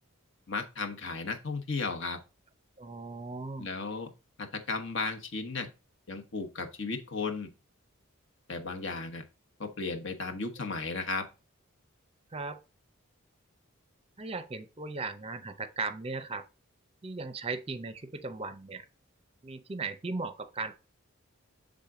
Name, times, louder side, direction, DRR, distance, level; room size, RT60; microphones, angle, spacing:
voice 1, 0.5-2.2 3.6-4.1 4.4-5.7 6.1-7.5 8.5-9.2 9.6-11.2, left 3 dB, 60° left, 1.1 m, -35 dB
voice 2, 2.8-3.7 12.3-12.6 14.2-16.4 17.0-18.9 19.4-20.7, right 3 dB, 25° right, 0.6 m, -37 dB
7.3 x 3.7 x 3.7 m
head